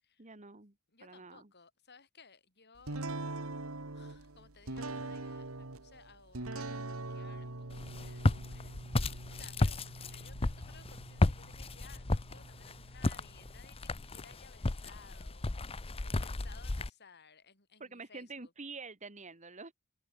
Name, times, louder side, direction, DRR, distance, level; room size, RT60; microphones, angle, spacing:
voice 1, 0.2-0.7 1.0-1.5 17.8-19.7, right 4 dB, 35° right, 2.3 m, -47 dB
voice 2, 0.9-3.1 3.3-3.5 3.9-18.5, left 5 dB, 50° left, 7.2 m, -60 dB
sound 1, 2.9-14.3, right 2 dB, 70° right, 2.0 m, -44 dB
Walk footsteps, 7.7-16.9, left 2 dB, 25° left, 0.7 m, -33 dB
head